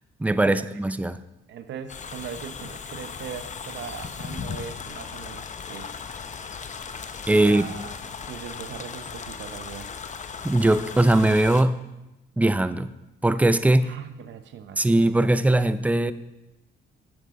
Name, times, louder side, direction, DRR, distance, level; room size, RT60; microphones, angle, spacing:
voice 1, 0.2-1.2 7.3-7.7 10.4-11.8 12.4-12.9 13.2-13.9 14.8-16.1, right 1 dB, 5° right, 13 dB, 0.4 m, -20 dB
voice 2, 1.5-5.9 7.4-7.9 8.2-9.9 13.8-15.0, right 7 dB, 65° right, 9 dB, 0.8 m, -39 dB
sound 1, 1.9-11.6, left 6 dB, 40° left, 0.7 m, -37 dB
10.5 x 7.7 x 3.7 m, 0.99 s
cardioid pair, 90°, 20 cm